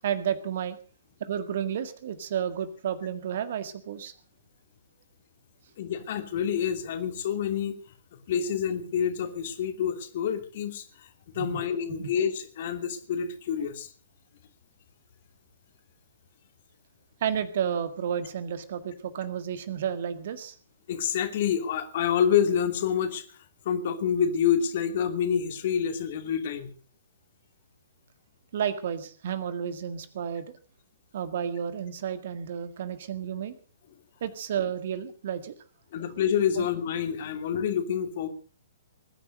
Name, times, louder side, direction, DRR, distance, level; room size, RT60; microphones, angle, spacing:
voice 1, 0.0-0.8 1.2-4.1 11.4-11.6 12.0-12.1 17.2-20.5 28.5-30.5 31.1-33.5 34.2-35.5 36.6-36.7, right 8 dB, 50° right, 12 dB, 1.8 m, -31 dB
voice 2, 5.8-7.7 8.1-11.1 11.3-13.9 20.9-23.2 23.6-26.7 35.9-38.3, left 8 dB, 45° left, 8 dB, 2.8 m, -27 dB
21.0 x 10.0 x 6.3 m, 0.40 s
figure-of-eight pair, 120°, 0 cm